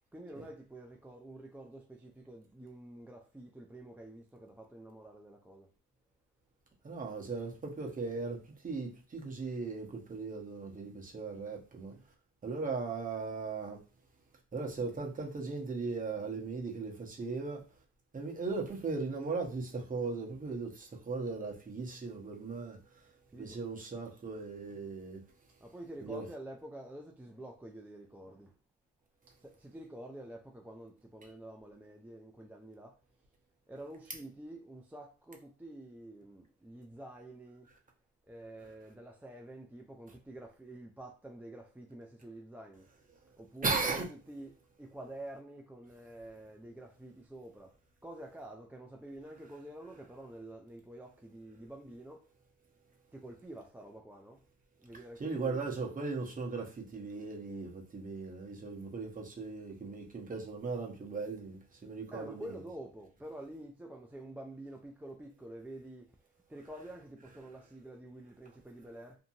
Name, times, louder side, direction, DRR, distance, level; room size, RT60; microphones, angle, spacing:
voice 1, 0.0-5.7 11.9-12.0 23.3-23.6 25.6-28.5 29.4-33.0 33.7-37.7 38.3-42.9 43.4-47.8 48.0-52.3 53.1-54.4 54.8-55.7 62.1-66.1 66.5-69.2, right 1 dB, 5° right, 0.3 m, -48 dB
voice 2, 6.8-11.9 12.4-13.8 14.5-17.6 18.1-22.8 23.3-25.2 26.0-26.2 43.6-44.1 55.2-62.6, right 4 dB, 25° right, 0.9 m, -38 dB
2.7 x 2.6 x 2.6 m
cardioid pair, 90°, 30 cm